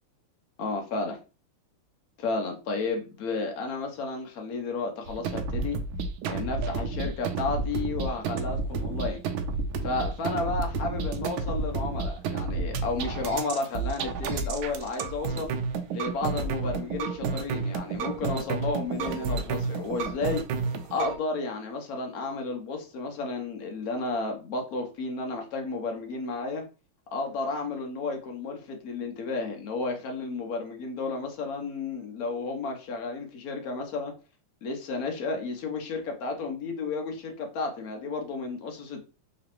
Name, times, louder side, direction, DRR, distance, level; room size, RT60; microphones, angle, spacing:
voice 1, 0.6-1.2 2.2-5.8 6.3-9.2 9.8-15.5 15.9-20.4 20.9-26.6 27.1-34.1 34.6-39.0, left 3 dB, 60° left, 1.0 m, -32 dB
sound 1, 5.1-21.2, right 4 dB, 75° right, 1.3 m, -31 dB
3.8 x 3.1 x 3.0 m
omnidirectional pair, 2.4 m